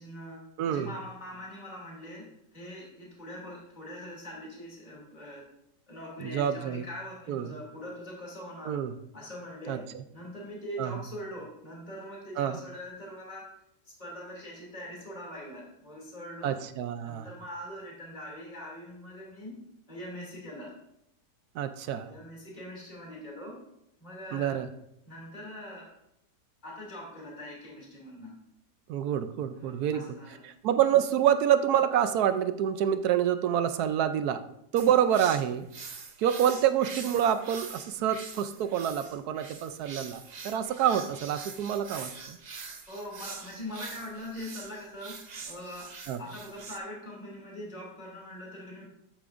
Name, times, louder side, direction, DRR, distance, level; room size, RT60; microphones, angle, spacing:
voice 1, 0.0-5.5 5.9-8.8 9.1-13.5 13.8-16.6 17.0-19.5 19.9-20.7 22.1-23.6 24.0-24.6 25.0-25.9 26.6-28.4 29.5-30.4 42.9-45.9 46.2-48.9, equal, 25° left, -3 dB, 2.6 m, -42 dB
voice 2, 0.6-0.9 6.2-6.8 7.3-7.5 8.7-8.9 9.7-10.0 10.8-11.0 12.4-12.6 16.4-17.3 21.5-22.1 24.3-24.7 28.9-30.0 30.4-34.4 34.7-35.7 36.2-42.4 46.1-46.2, right 10 dB, 70° right, 11 dB, 1.1 m, -27 dB
sound 1, 34.8-46.8, right 5 dB, 55° right, 0.4 m, -44 dB
13.0 x 8.4 x 2.5 m, 0.80 s
omnidirectional pair, 1.8 m